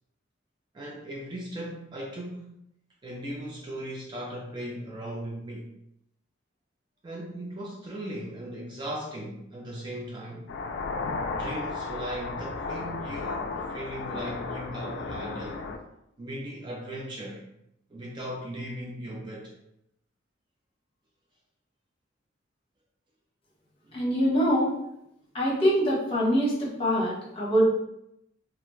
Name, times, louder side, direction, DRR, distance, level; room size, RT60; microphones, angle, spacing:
voice 1, 0.7-2.5 3.0-5.7 7.0-10.5 11.3-15.7 16.2-17.4 17.9-19.5 23.8-24.0, right 1 dB, 25° right, -3 dB, 0.3 m, -38 dB
sound 1, 10.5-15.8, left 3 dB, 60° left, 0.3 m, -34 dB
voice 2, 23.9-24.7 25.3-27.6, equal, 30° left, -6 dB, 0.9 m, -24 dB
2.4 x 2.1 x 3.0 m, 0.81 s
head